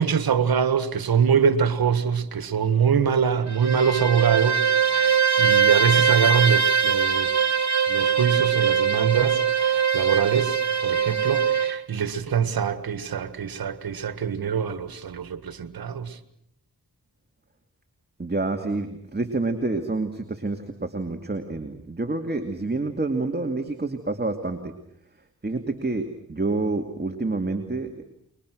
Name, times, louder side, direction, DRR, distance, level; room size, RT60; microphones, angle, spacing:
voice 1, 0.0-7.5 7.9-10.6 10.8-16.2, right 7 dB, 75° right, 1.7 m, -24 dB
Bowed string instrument, 3.5-11.8, right 7 dB, 50° right, 1.8 m, -22 dB
voice 2, 18.2-24.7 25.4-28.0, right 3 dB, 25° right, 2.5 m, -28 dB
28.5 x 23.0 x 6.4 m
cardioid pair, 40°, 36 cm